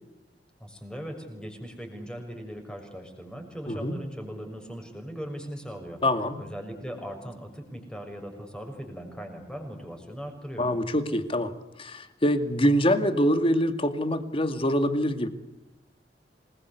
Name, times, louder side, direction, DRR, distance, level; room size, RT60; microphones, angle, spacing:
voice 1, 0.6-6.0 6.4-10.7, equal, 5° left, 3 dB, 6.5 m, -39 dB
voice 2, 3.7-4.0 6.0-6.4 10.6-11.5 11.8-15.3, equal, 30° left, 10 dB, 2.2 m, -25 dB
27.5 x 21.0 x 8.3 m, 0.93 s
head